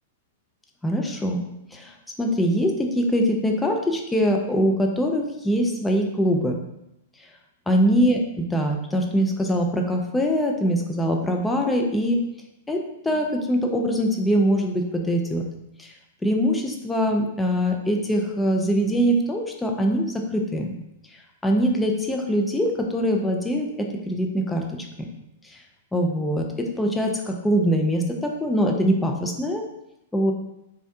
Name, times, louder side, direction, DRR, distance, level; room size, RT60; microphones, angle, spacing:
voice 1, 0.8-1.4 1.7-6.6 7.7-12.2 12.7-15.5 15.8-15.9 16.2-20.8 21.4-24.6 25.0-25.1 25.4-25.6 25.9-29.6 30.1-30.3, equal, 10° left, 1 dB, 0.4 m, -23 dB
2.4 x 2.1 x 2.7 m, 0.85 s
hypercardioid pair, 105°, 0 cm